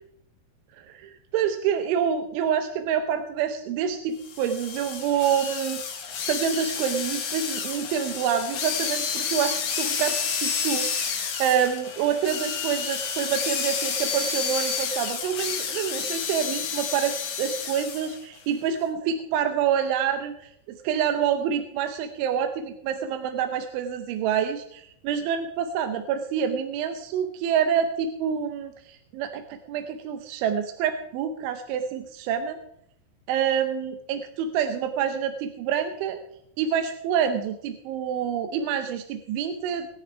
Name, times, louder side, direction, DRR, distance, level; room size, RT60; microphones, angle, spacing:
voice 1, 0.8-32.6 33.3-36.2 36.6-39.9, right 8 dB, 80° right, 7 dB, 3.3 m, -27 dB
sound 1, 4.2-18.2, left 6 dB, 55° left, 2.3 m, -30 dB
21.5 x 10.0 x 4.7 m, 0.73 s
omnidirectional pair, 5.5 m